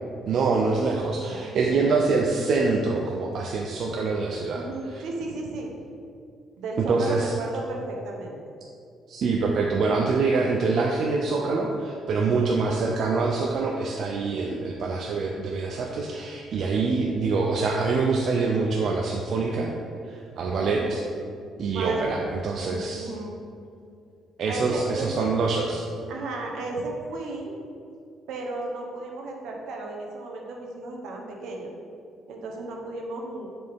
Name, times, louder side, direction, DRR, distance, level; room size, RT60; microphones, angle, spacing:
voice 1, 0.3-5.0 6.9-7.3 9.1-19.7 20.0-21.0 21.6-23.1 24.4-25.9, right 4 dB, 60° right, 0 dB, 0.5 m, -25 dB
voice 2, 1.3-2.1 4.5-5.7 6.6-8.4 12.4-12.8 20.5-21.0 21.7-22.3 22.6-23.3 24.5-25.3 26.1-27.6 28.3-31.7 32.3-33.5, right 2 dB, 75° right, 0 dB, 0.9 m, -34 dB
6.5 x 4.3 x 3.5 m, 2.4 s
cardioid pair, 110°, 0 cm